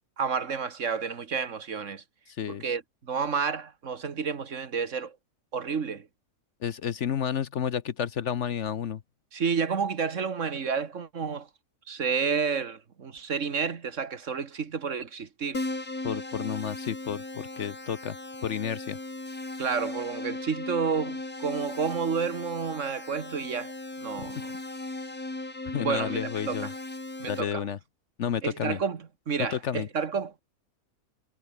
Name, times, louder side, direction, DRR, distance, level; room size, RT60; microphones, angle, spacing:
voice 1, 0.2-2.0 2.5-5.1 5.5-6.1 9.3-11.5 11.9-15.6 19.6-23.7 24.0-24.6 25.8-26.7 27.2-27.6 28.4-30.4, right 6 dB, 55° right, 1.8 m, -30 dB
voice 2, 6.6-9.0 16.0-18.2 18.4-19.0 24.2-24.4 25.7-26.7 27.2-27.8 28.2-28.8 29.5-29.9, left 8 dB, 55° left, 1.1 m, -31 dB
Keyboard (musical), 15.5-27.4, left 2 dB, 75° left, 6.4 m, -37 dB
omnidirectional pair, 1.5 m